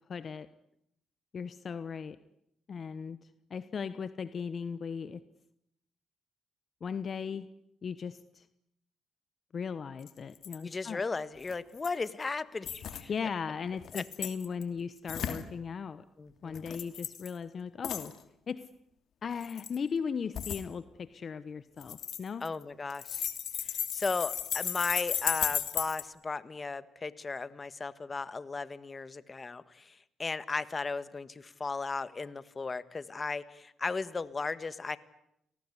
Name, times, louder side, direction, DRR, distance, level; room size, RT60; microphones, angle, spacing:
voice 1, 0.1-0.5 1.3-2.2 2.7-3.2 3.5-5.2 6.8-7.5 7.8-8.5 9.5-11.0 13.1-16.0 16.4-18.1 18.5-18.7 19.2-22.5, left 6 dB, 45° left, 14 dB, 1.1 m, -37 dB
sound 1, 10.1-10.2 10.3-10.6 11.5-12.1 12.6-13.0 13.8-14.6 15.1-15.4 16.5-17.3 17.8-18.1 19.3-19.8 20.3-20.6 21.8-22.6 22.9-26.0, left 9 dB, 70° left, 2.8 m, -35 dB
voice 2, 10.6-13.1 13.9-14.0 16.2-16.7 22.4-23.2 23.6-35.0, left 4 dB, 30° left, 15 dB, 1.6 m, -36 dB
29.5 x 19.0 x 9.9 m, 0.79 s
cardioid pair, 90°, 0 cm